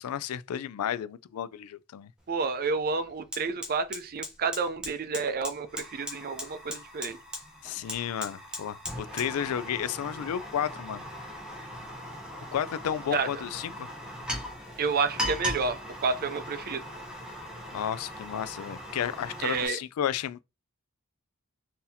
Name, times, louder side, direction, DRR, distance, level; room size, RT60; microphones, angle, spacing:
voice 1, 0.0-2.1 7.6-11.0 12.5-13.9 17.7-20.4, left 9 dB, 75° left, 0.3 m, -32 dB
Fire, 2.2-2.3 2.7-19.7, left 1 dB, 5° right, 0.8 m, -39 dB
voice 2, 2.3-7.2 13.1-13.4 14.8-16.8 19.4-19.8, right 4 dB, 40° right, 0.5 m, -30 dB
3.9 x 2.8 x 2.7 m
head